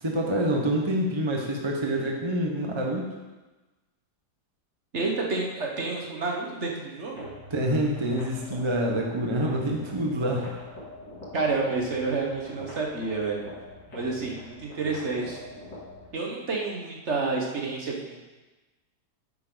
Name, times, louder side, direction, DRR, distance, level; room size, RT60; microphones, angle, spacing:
voice 1, 0.0-3.1 7.5-10.6, right 1 dB, 20° right, 0 dB, 0.9 m, -27 dB
voice 2, 4.9-7.3 11.3-13.4 13.9-15.4 16.1-18.2, right 3 dB, 45° right, -1 dB, 1.6 m, -29 dB
sound 1, 7.1-16.1, left 1 dB, 80° left, 3.7 m, -44 dB
9.7 x 8.8 x 3.9 m, 1.2 s
omnidirectional pair, 1.8 m